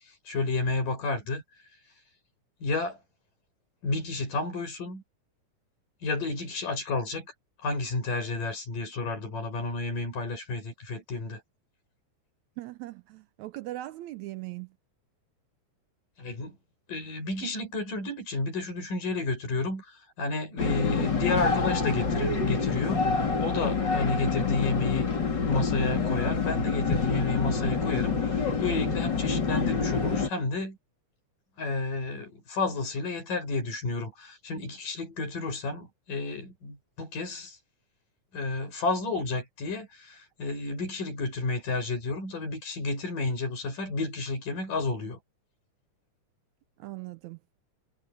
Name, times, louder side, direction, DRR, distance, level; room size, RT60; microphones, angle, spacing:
voice 1, 0.3-1.4 2.6-3.0 3.8-5.0 6.0-7.3 7.6-11.4 16.2-16.5 16.9-23.0 23.4-25.1 25.4-30.8 31.6-37.6 38.3-45.2, left 3 dB, 85° left, 8.3 m, -31 dB
voice 2, 12.6-12.9 13.4-14.7 46.8-47.4, right 17 dB, 80° right, 1.7 m, -38 dB
sound 1, 20.6-30.3, left 4 dB, 35° left, 3.5 m, -27 dB
omnidirectional pair, 3.7 m